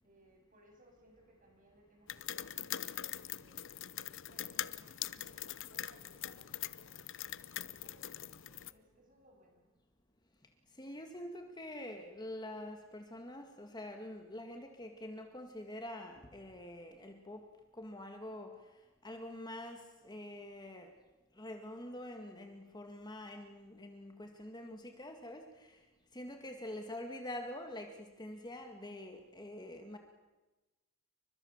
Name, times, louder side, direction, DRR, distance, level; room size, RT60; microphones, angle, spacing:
voice 1, 0.0-3.6 4.0-9.7 26.2-26.4, right 1 dB, 35° right, 2 dB, 7.6 m, -65 dB
sound 1, 2.1-8.7, left 12 dB, 60° left, 0.9 m, -43 dB
voice 2, 10.7-17.5 17.7-18.7 19.0-20.9 21.3-25.8 26.1-30.0, left 1 dB, 20° left, 4 dB, 2.0 m, -46 dB
29.5 x 24.5 x 7.4 m, 1.1 s
head